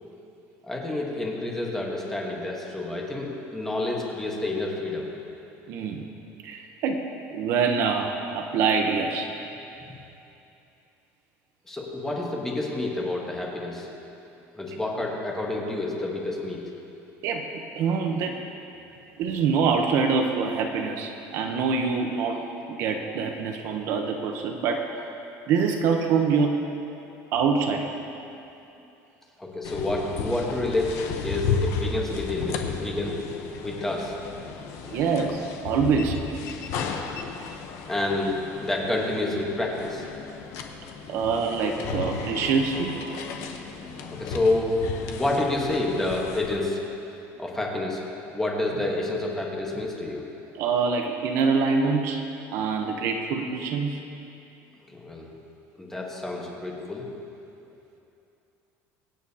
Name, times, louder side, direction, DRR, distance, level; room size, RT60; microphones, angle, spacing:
voice 1, 0.6-5.1 11.7-13.9 14.5-16.6 29.4-33.2 33.6-34.2 37.9-40.1 43.5-44.8 45.1-46.8 47.4-48.0 48.3-50.2 54.9-55.3 55.8-57.1, left 2 dB, 5° left, -2 dB, 1.2 m, -29 dB
voice 2, 5.7-6.0 6.4-7.0 7.3-9.3 17.2-17.5 17.8-18.4 19.2-22.4 22.7-24.9 25.5-26.7 27.3-27.8 34.9-36.2 41.1-43.0 50.5-52.2 52.5-54.0, right 5 dB, 50° right, 3 dB, 0.8 m, -25 dB
sound 1, 29.6-46.6, left 5 dB, 55° left, 0.9 m, -34 dB
24.5 x 8.7 x 2.8 m, 2.9 s
cardioid pair, 180°, 6 cm